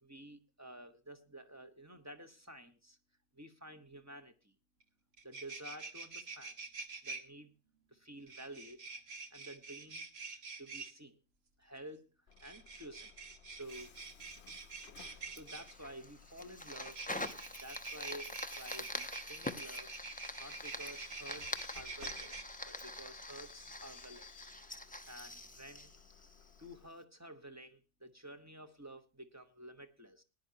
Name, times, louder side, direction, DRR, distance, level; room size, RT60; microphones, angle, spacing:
voice 1, 0.0-3.0 3.3-4.5 5.2-6.5 7.0-7.5 7.9-8.8 9.3-11.2 11.6-12.1 12.4-13.1 13.5-13.9 15.0-17.0 17.6-19.9 20.4-22.3 22.7-24.3 25.1-25.9 26.6-30.2, right 1 dB, 15° right, 7 dB, 1.1 m, -51 dB
sound 1, 4.8-4.9 5.1-7.2 8.3-10.9 12.3-15.7 16.7-22.4, right 4 dB, 60° right, 1.5 m, -46 dB
Bus / Alarm, 12.3-26.9, left 8 dB, 65° left, 1.0 m, -59 dB
Fire, 15.4-26.7, left 1 dB, 10° left, 0.6 m, -45 dB
19.5 x 10.5 x 2.8 m, 0.29 s
omnidirectional pair, 1.2 m